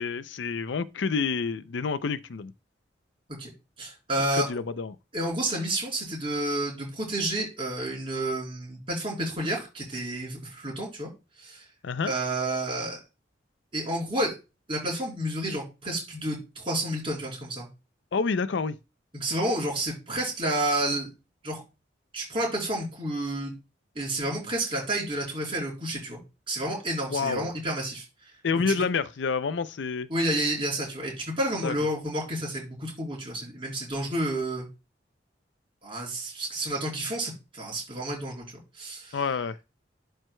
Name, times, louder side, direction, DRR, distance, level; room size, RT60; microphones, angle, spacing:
voice 1, 0.0-2.5 4.3-5.0 11.8-12.1 18.1-18.8 27.1-27.5 28.4-30.1 31.6-31.7 39.1-39.6, left 5 dB, 80° left, 0.5 m, -28 dB
voice 2, 3.8-4.5 5.1-11.1 11.4-11.6 12.0-13.0 13.7-14.3 14.7-17.7 19.1-21.1 21.4-21.6 22.1-23.5 24.0-26.2 26.5-28.0 28.5-28.8 30.1-34.7 35.8-38.4 38.7-39.2, right 1 dB, 30° right, 3.8 m, -30 dB
12.0 x 4.6 x 2.2 m
head